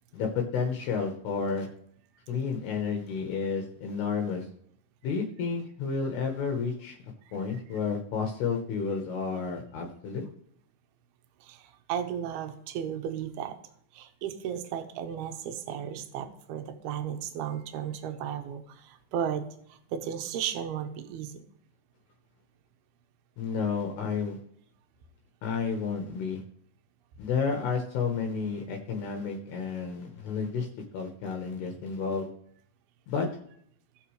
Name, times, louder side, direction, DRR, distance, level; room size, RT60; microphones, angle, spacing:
voice 1, 0.1-1.7 2.3-4.5 5.0-7.0 7.3-10.2 23.4-24.4 25.4-26.4 27.2-30.7 30.9-32.3 33.1-33.3, left 5 dB, 70° left, 3 dB, 2.8 m, -31 dB
voice 2, 11.4-13.6 13.9-21.4, right 9 dB, 70° right, 6 dB, 2.5 m, -35 dB
18.5 x 6.7 x 3.2 m, 0.66 s
omnidirectional pair, 5.6 m